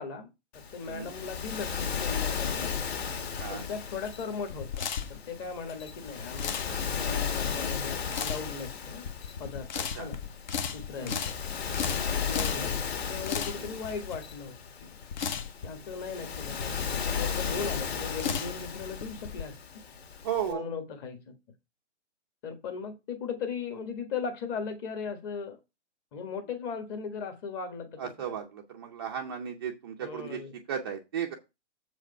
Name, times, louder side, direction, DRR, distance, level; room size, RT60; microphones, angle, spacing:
voice 1, 0.0-2.7 3.5-9.1 9.4-10.2 10.7-11.4 11.6-14.9 15.6-19.6 20.5-21.4 22.4-25.6 26.1-28.0 28.3-28.4 30.0-30.5, left 5 dB, 20° left, 1.4 m, -38 dB
Waves surf, 0.5-20.5, left 7 dB, 60° left, 2.2 m, -35 dB
sound 1, 3.0-19.4, left 7 dB, 40° left, 1.0 m, -37 dB
voice 2, 20.2-20.7 28.0-30.4 30.7-31.3, right 8 dB, 20° right, 0.6 m, -35 dB
7.2 x 5.0 x 5.4 m
hypercardioid pair, 155°, 36 cm